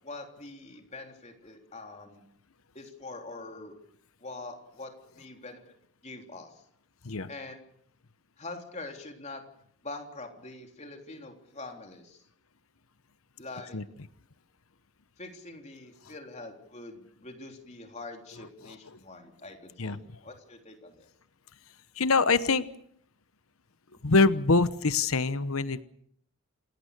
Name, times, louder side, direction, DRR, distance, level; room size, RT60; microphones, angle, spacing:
voice 1, 0.0-2.2 2.8-3.8 4.2-5.7 6.0-6.6 7.3-7.6 8.4-9.4 9.8-12.2 13.4-13.8 15.2-21.1, left 2 dB, 30° left, 4 dB, 3.5 m, -44 dB
voice 2, 22.0-22.7 24.0-25.8, left 3 dB, 75° left, 14 dB, 1.0 m, -24 dB
28.0 x 18.0 x 6.7 m, 0.66 s
head